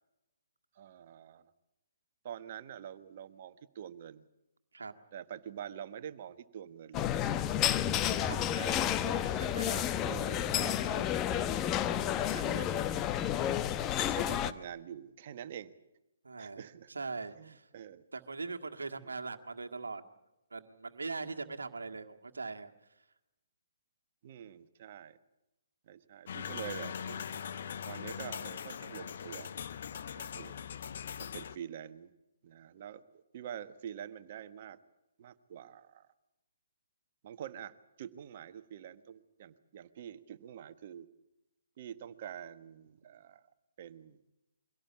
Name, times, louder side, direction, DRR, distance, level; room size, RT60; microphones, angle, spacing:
voice 1, 0.8-1.4 2.2-4.3 5.1-7.5 7.9-9.3 10.0-11.1 12.3-13.0 14.1-15.7 16.4-16.9 17.4-18.0 19.0-19.1 24.2-25.2 25.9-27.2 27.9-29.5 29.9-30.6 31.2-32.1 32.4-34.8 35.2-36.1 37.2-41.1 41.8-43.4 43.8-44.2, right 9 dB, 45° right, 12 dB, 1.4 m, -46 dB
sound 1, 6.9-14.5, left 10 dB, 25° left, 0.9 m, -31 dB
voice 2, 8.0-8.4 9.3-9.9 10.7-11.2 16.2-17.7 18.1-20.0 20.5-22.7, right 4 dB, 80° right, 5 dB, 1.7 m, -41 dB
sound 2, 26.3-31.6, left 8 dB, 55° left, 1.0 m, -41 dB
24.0 x 17.5 x 8.5 m, 0.91 s
figure-of-eight pair, 135°, 0 cm